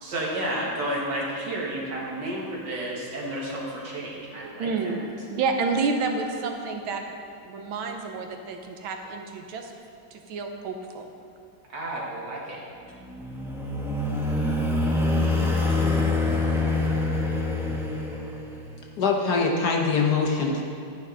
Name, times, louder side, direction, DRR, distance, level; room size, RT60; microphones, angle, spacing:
voice 1, 0.0-4.9 11.7-12.6, right 1 dB, 60° right, -3 dB, 2.4 m, -31 dB
voice 2, 4.6-7.0 7.4-9.7 10.1-11.1, right 4 dB, 90° right, 4 dB, 1.7 m, -29 dB
sound 1, 12.9-18.7, left 2 dB, ahead, 0.6 m, -25 dB
voice 3, 19.0-20.6, left 4 dB, 60° left, 0 dB, 1.3 m, -23 dB
11.0 x 9.8 x 4.0 m, 2.5 s
omnidirectional pair, 2.2 m